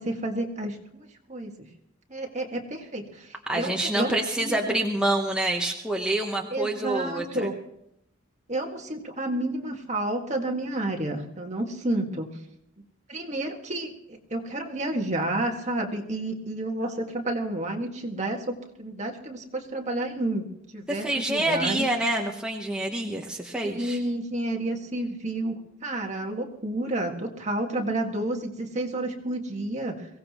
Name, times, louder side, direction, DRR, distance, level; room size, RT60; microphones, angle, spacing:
voice 1, 0.0-1.5 2.1-4.1 4.4-4.8 6.5-7.5 8.5-12.3 13.1-20.4 20.7-21.9 23.6-30.1, right 1 dB, 35° right, 2 dB, 1.9 m, -30 dB
voice 2, 3.5-7.5 20.9-24.0, right 1 dB, 5° right, 0 dB, 1.0 m, -27 dB
22.5 x 17.0 x 3.0 m, 0.76 s
head